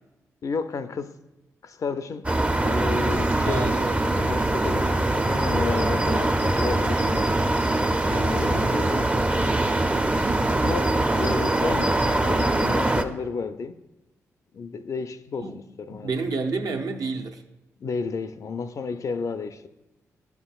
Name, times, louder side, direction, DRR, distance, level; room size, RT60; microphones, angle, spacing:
voice 1, 0.4-1.2 1.6-2.3 2.6-7.3 8.1-9.1 10.6-13.8 14.5-16.1 17.8-19.7, left 5 dB, 55° left, 0.4 m, -32 dB
sound 1, 2.2-13.0, right 2 dB, 20° right, 0.5 m, -23 dB
voice 2, 3.5-4.1 15.4-15.6 15.9-17.4, right 4 dB, 65° right, 0.7 m, -29 dB
11.0 x 5.7 x 2.4 m
supercardioid pair, 50°, 7 cm